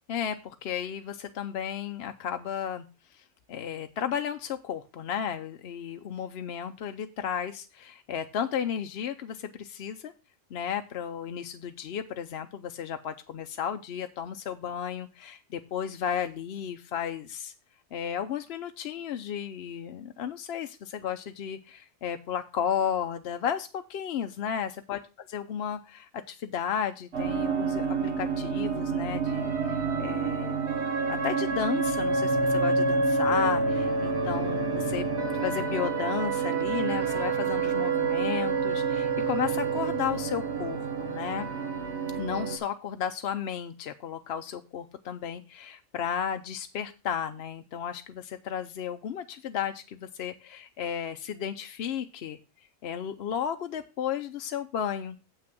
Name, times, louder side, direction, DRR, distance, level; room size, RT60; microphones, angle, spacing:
voice 1, 0.1-2.8 3.1-3.2 3.5-10.1 10.5-17.5 17.9-25.0 25.3-30.6 31.1-35.1 35.4-41.5 42.1-52.4 52.8-55.2, left 8 dB, 60° left, 7 dB, 0.8 m, -33 dB
sound 1, 27.1-42.6, right 4 dB, 65° right, 1.4 m, -28 dB
7.7 x 6.1 x 5.9 m, 0.31 s
omnidirectional pair, 1.3 m